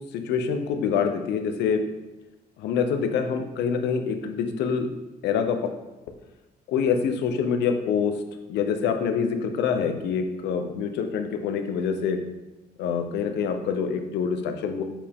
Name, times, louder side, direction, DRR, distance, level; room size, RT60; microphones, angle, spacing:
voice 1, 0.1-1.8 2.6-4.9 5.2-5.7 6.7-8.2 8.5-12.2 12.8-14.8, left 6 dB, 90° left, 6 dB, 0.7 m, -26 dB
7.0 x 4.6 x 3.6 m, 1.0 s
cardioid pair, 95°, 17 cm